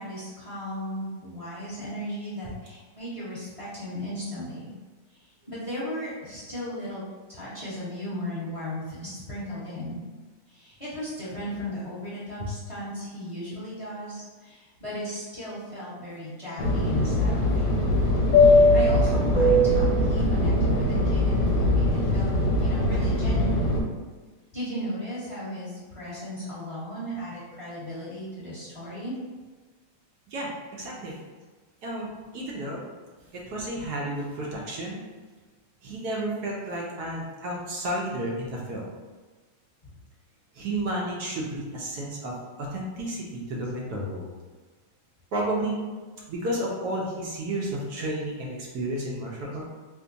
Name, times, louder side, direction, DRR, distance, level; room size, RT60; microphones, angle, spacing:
voice 1, 0.0-4.7 5.1-7.0 7.3-10.0 10.5-17.8 18.3-22.3 22.6-23.8 24.5-29.1, equal, 20° left, -10 dB, 0.9 m, -36 dB
Fixed-wing aircraft airplane, 16.6-23.8, left 1 dB, 70° left, 1.2 m, -21 dB
voice 2, 30.3-31.1 31.8-32.8 33.3-35.0 35.8-38.9 40.5-44.3 45.3-45.9 46.3-49.6, right 1 dB, 65° right, -3 dB, 1.1 m, -32 dB
3.5 x 2.1 x 3.8 m, 1.4 s
omnidirectional pair, 2.2 m